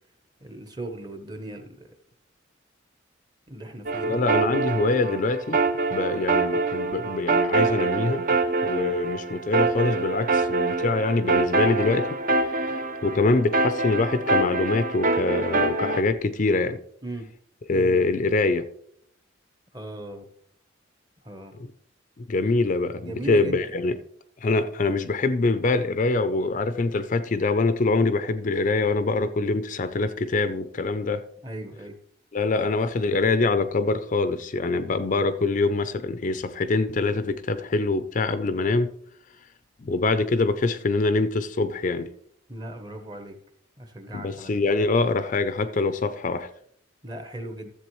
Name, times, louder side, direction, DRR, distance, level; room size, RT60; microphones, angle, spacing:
voice 1, 0.4-1.8 3.5-4.2 17.0-17.3 17.7-18.0 19.7-20.3 21.2-21.5 23.0-23.6 31.4-32.0 42.5-43.3 43.8-44.6 47.0-47.7, right 1 dB, 20° right, 0.9 m, -37 dB
sound 1, 3.9-16.0, right 3 dB, 40° right, 0.6 m, -25 dB
voice 2, 4.0-5.6 5.9-8.3 8.6-12.2 13.0-16.8 17.7-18.7 21.6-21.7 22.2-24.0 24.4-31.2 32.3-38.9 39.8-42.1 44.1-46.5, left 3 dB, 40° left, 0.4 m, -24 dB
13.5 x 7.5 x 3.1 m
head